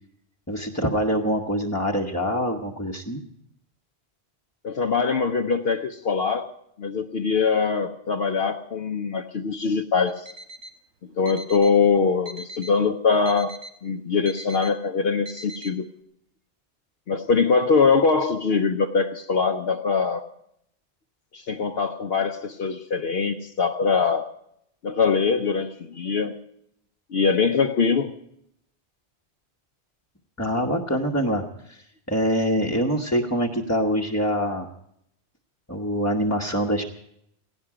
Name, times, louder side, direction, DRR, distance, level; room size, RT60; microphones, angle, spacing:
voice 1, 0.5-3.2 30.4-34.7 35.7-36.8, equal, 15° left, 0 dB, 1.1 m, -25 dB
voice 2, 4.6-6.5 6.8-10.3 11.1-15.9 17.1-20.3 21.3-24.3 24.8-26.4 27.1-28.1, left 5 dB, 65° left, 3 dB, 1.0 m, -23 dB
Alarm, 10.1-10.8 11.3-11.8 12.3-12.8 13.3-13.8 14.3-14.8 15.3-15.8, right 1 dB, 80° right, 1.4 m, -41 dB
17.0 x 17.0 x 4.9 m, 0.75 s
omnidirectional pair, 1.1 m